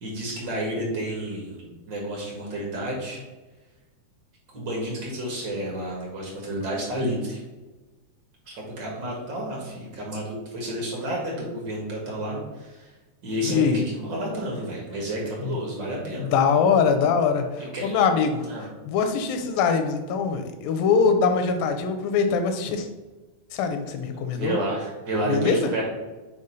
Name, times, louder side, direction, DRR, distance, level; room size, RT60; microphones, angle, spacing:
voice 1, 0.0-3.2 4.5-7.4 8.4-12.9 13.2-16.3 17.6-18.0 18.5-18.7 24.1-25.8, right 1 dB, 45° right, -2 dB, 1.5 m, -31 dB
voice 2, 13.5-13.8 15.4-15.5 16.2-18.5 18.9-22.9 23.5-24.5 25.3-25.7, left 5 dB, 85° left, 7 dB, 2.4 m, -23 dB
5.1 x 4.2 x 5.2 m, 1.2 s
omnidirectional pair, 4.2 m